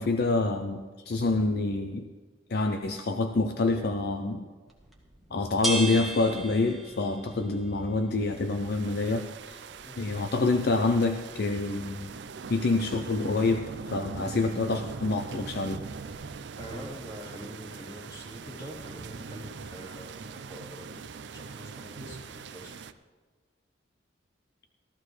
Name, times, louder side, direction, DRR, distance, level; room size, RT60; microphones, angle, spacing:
voice 1, 0.0-2.1 2.5-4.4 5.3-9.6 10.0-12.1 12.5-13.6 13.9-15.8, left 3 dB, 55° left, 6 dB, 0.5 m, -27 dB
sound 1, 4.7-16.1, right 1 dB, ahead, 1.4 m, -41 dB
sound 2, 8.2-22.9, right 5 dB, 60° right, 0.4 m, -42 dB
voice 2, 16.6-21.0 21.3-22.7, equal, 20° left, -6 dB, 3.5 m, -44 dB
14.0 x 14.0 x 3.2 m, 1.4 s
head